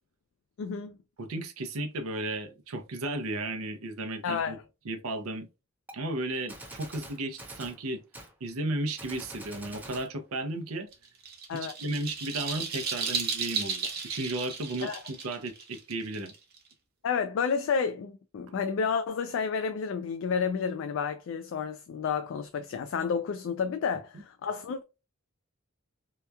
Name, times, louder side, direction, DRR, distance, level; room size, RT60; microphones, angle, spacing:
voice 1, 0.6-1.0 4.2-4.6 11.5-11.7 14.8-15.0 17.0-24.8, left 6 dB, 65° left, 0.3 m, -30 dB
voice 2, 1.2-4.6 4.8-5.5 5.9-8.0 8.4-10.9 11.8-14.9 15.2-16.3, right 2 dB, 85° right, 0.6 m, -34 dB
Gunshot gunfire, 5.9-6.0 6.5-7.8 8.1-8.3 9.0-10.1, right 1 dB, 10° right, 0.4 m, -45 dB
sound 1, 10.9-16.7, right 5 dB, 50° right, 0.6 m, -34 dB
2.8 x 2.3 x 2.2 m
head